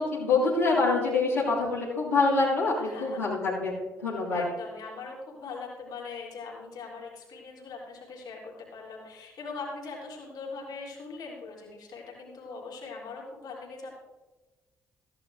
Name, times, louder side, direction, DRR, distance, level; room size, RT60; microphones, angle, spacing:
voice 1, 0.0-4.4, left 3 dB, 90° left, -9 dB, 2.6 m, -26 dB
voice 2, 2.8-3.2 4.3-14.0, left 4 dB, 60° left, -3 dB, 3.2 m, -41 dB
14.0 x 10.5 x 3.4 m, 1.2 s
figure-of-eight pair, 40°, 8 cm